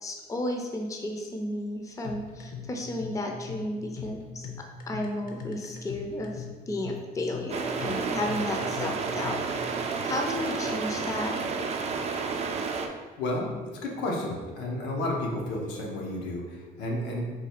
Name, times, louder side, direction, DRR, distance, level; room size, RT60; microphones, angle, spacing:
voice 1, 0.0-4.5 4.9-9.8 10.0-11.4, left 1 dB, 20° left, 2 dB, 0.5 m, -33 dB
sound 1, 2.0-9.6, left 7 dB, 60° left, 0.7 m, -41 dB
sound 2, 7.5-12.9, right 5 dB, 40° right, 0.4 m, -31 dB
voice 2, 13.2-17.3, left 1 dB, 90° left, -1 dB, 0.8 m, -32 dB
3.9 x 2.3 x 4.3 m, 1.4 s
cardioid pair, 110°, 17 cm